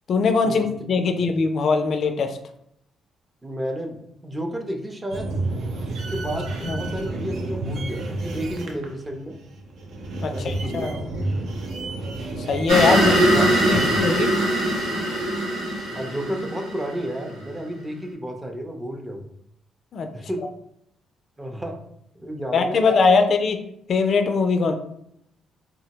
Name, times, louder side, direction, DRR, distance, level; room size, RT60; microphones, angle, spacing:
voice 1, 0.1-2.4 6.6-6.8 10.2-10.9 12.5-13.1 13.7-14.3 19.9-20.1 22.5-23.6 23.9-24.7, left 4 dB, 55° left, 6 dB, 0.3 m, -21 dB
voice 2, 3.4-5.3 5.9-9.4 10.3-11.2 12.9-14.1 15.9-19.3 20.1-20.5 21.4-21.8 22.1-23.3, equal, 15° right, 3 dB, 0.5 m, -32 dB
Amsterdam bus, 5.1-14.0, right 2 dB, 70° right, 0.5 m, -30 dB
sound 1, 12.7-17.3, right 1 dB, 90° right, 1.2 m, -22 dB
3.6 x 2.0 x 2.8 m, 0.74 s
cardioid pair, 90°, 0 cm